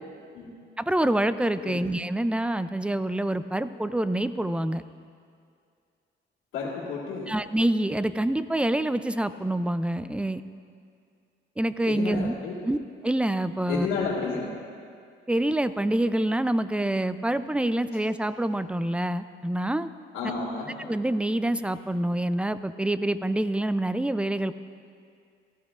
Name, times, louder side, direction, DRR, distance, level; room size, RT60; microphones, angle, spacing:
voice 1, 0.8-4.8 7.3-10.4 11.6-12.3 12.6-12.8 13.0-13.9 15.3-19.9 20.2-20.3 20.8-24.5, right 1 dB, 5° right, 13 dB, 0.4 m, -26 dB
voice 2, 6.5-7.3 11.9-12.6 13.7-14.5 20.1-20.8, left 4 dB, 90° left, -9 dB, 2.0 m, -31 dB
17.5 x 12.5 x 2.5 m, 2.2 s
cardioid pair, 90°, 20 cm